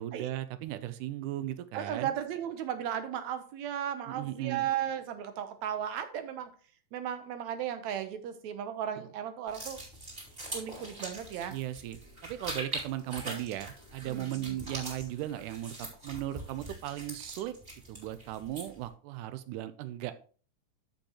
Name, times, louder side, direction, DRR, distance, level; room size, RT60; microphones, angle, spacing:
voice 1, 0.0-2.1 4.1-4.7 11.5-17.6 17.9-20.1, right 13 dB, 90° right, 12 dB, 2.1 m, -37 dB
voice 2, 1.7-6.5 6.9-9.8 10.5-11.6 14.1-14.6, right 10 dB, 70° right, 9 dB, 2.0 m, -35 dB
sound 1, 9.5-18.9, right 1 dB, 20° right, 2.4 m, -43 dB
13.5 x 5.3 x 2.9 m, 0.41 s
omnidirectional pair, 3.6 m